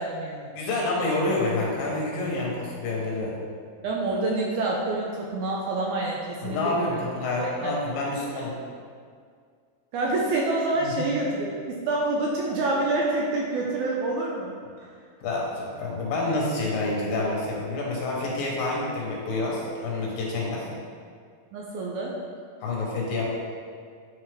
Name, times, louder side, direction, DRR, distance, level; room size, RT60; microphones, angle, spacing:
voice 1, 0.0-0.5 3.8-7.0 7.4-7.8 9.9-11.5 11.9-14.5 14.8-14.9 21.5-22.2, right 2 dB, 80° right, -3 dB, 1.9 m, -27 dB
voice 2, 0.5-3.4 6.4-8.6 10.8-11.0 15.2-20.7 22.6-23.2, left 2 dB, 75° left, -3 dB, 2.9 m, -28 dB
9.6 x 4.1 x 3.4 m, 2.1 s
omnidirectional pair, 4.0 m